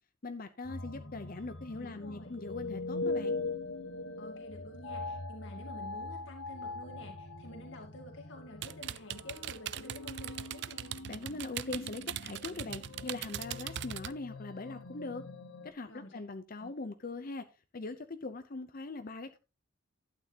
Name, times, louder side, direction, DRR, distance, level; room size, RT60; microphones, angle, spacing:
voice 1, 0.2-3.4 11.1-15.2 15.6-17.5 17.7-19.4, left 3 dB, 45° left, 9 dB, 0.7 m, -41 dB
sound 1, 0.6-15.7, left 3 dB, 85° left, 1.5 m, -42 dB
voice 2, 1.7-2.4 4.2-10.9 15.9-16.2 16.6-16.7, left 1 dB, 60° left, 2 dB, 2.0 m, -50 dB
sound 2, 8.6-14.1, right 11 dB, 55° right, 0.4 m, -40 dB
12.0 x 9.0 x 2.9 m, 0.29 s
head